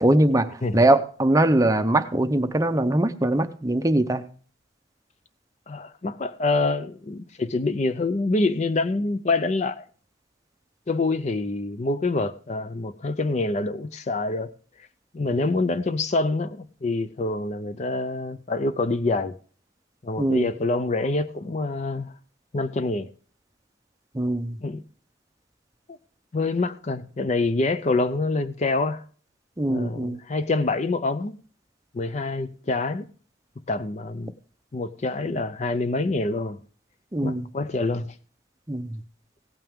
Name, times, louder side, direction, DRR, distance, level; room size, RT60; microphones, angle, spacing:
voice 1, 0.0-4.2 20.2-20.5 24.1-24.6 29.6-30.2 37.1-37.5 38.7-39.0, right 1 dB, 15° right, 0.6 m, -22 dB
voice 2, 5.7-9.8 10.9-14.5 15.1-19.3 20.0-22.1 22.5-23.1 24.6-24.8 25.9-26.0 26.3-29.0 29.7-31.4 31.9-33.1 33.7-34.3 34.7-36.6 37.2-38.1, left 3 dB, 35° left, 0.5 m, -26 dB
16.5 x 9.0 x 3.6 m
head